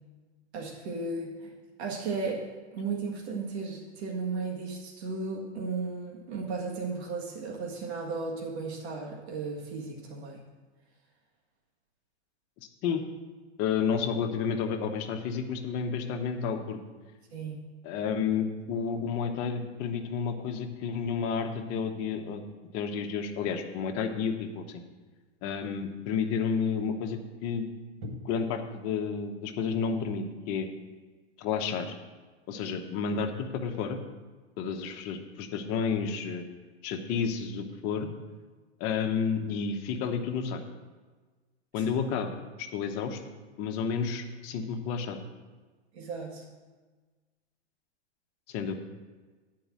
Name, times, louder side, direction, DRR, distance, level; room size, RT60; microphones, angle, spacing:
voice 1, 0.5-1.5 1.8-2.5 2.7-10.4 17.3-17.6 28.0-28.1 41.8-41.9 45.9-46.4, right 4 dB, 70° right, -2 dB, 1.8 m, -35 dB
voice 2, 13.6-16.8 17.8-22.4 22.7-24.8 25.4-27.6 28.2-30.7 31.4-31.9 32.5-34.0 34.6-36.4 36.8-38.1 38.8-40.6 41.7-42.3 42.6-43.2 43.6-45.2 48.5-48.7, left 6 dB, 45° left, 5 dB, 1.1 m, -31 dB
9.3 x 4.8 x 7.4 m, 1.3 s
hypercardioid pair, 110°, 33 cm